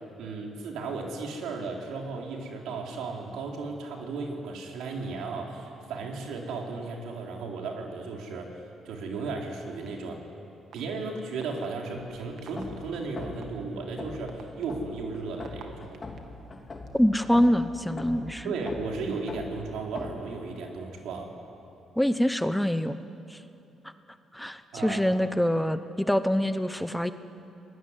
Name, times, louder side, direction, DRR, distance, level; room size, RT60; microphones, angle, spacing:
voice 1, 0.2-8.5 8.8-10.2 10.7-16.0 18.4-21.3 24.7-25.1, right 4 dB, 85° right, 0 dB, 4.0 m, -35 dB
sound 1, 9.8-9.9 10.7-10.8 11.4-11.7 12.4-12.6 13.4-13.5 14.1-16.2 16.9-17.6, right 8 dB, 70° right, 2.2 m, -47 dB
sound 2, 12.0-20.1, left 3 dB, 30° left, 3.6 m, -42 dB
voice 2, 16.9-18.5 22.0-23.0 23.3-23.4 24.3-27.1, equal, 5° left, 11 dB, 1.0 m, -25 dB
26.0 x 19.0 x 9.9 m, 2.8 s
cardioid pair, 90°, 0 cm